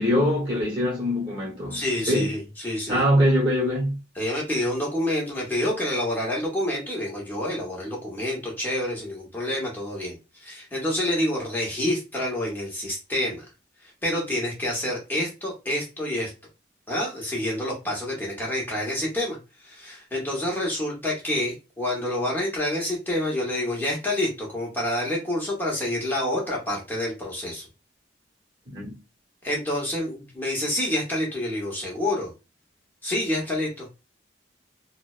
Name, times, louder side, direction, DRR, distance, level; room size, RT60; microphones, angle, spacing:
voice 1, 0.0-2.3 2.9-4.0 28.7-28.9, equal, 25° right, 1.0 m, -23 dB
voice 2, 1.7-3.1 4.2-13.5 14.0-16.3 16.9-19.4 19.6-27.7 29.4-32.3 33.0-33.9, left 1 dB, 10° left, 0.8 m, -28 dB
2.5 x 2.1 x 2.3 m
head